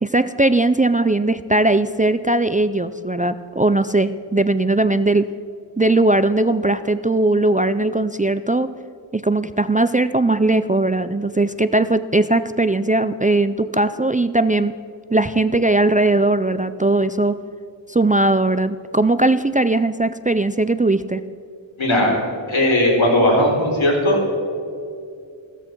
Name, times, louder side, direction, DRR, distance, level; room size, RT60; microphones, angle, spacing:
voice 1, 0.0-5.3 5.8-8.7 9.1-14.7 15.1-17.4 17.9-21.2, right 2 dB, 20° right, 12 dB, 0.4 m, -19 dB
voice 2, 21.8-22.1 22.5-24.4, left 1 dB, 75° left, -2 dB, 4.4 m, -17 dB
16.0 x 13.5 x 4.6 m, 2.5 s
wide cardioid pair, 60°, 47 cm